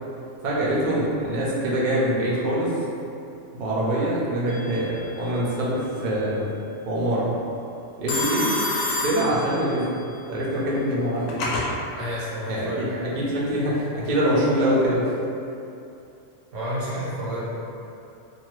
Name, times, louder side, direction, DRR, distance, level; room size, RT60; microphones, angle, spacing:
voice 1, 0.4-2.7 3.5-6.5 6.9-7.3 8.0-8.4 9.0-9.9 10.3-11.3 12.5-15.1, right 1 dB, 50° right, -7 dB, 0.6 m, -24 dB
Telephone, 4.5-5.0 8.1-9.9 10.9-11.7, left 2 dB, 70° left, 0.9 m, -28 dB
voice 2, 12.0-12.9 16.5-17.4, equal, 80° right, -8 dB, 1.2 m, -30 dB
2.6 x 2.3 x 3.0 m, 2.7 s
omnidirectional pair, 1.3 m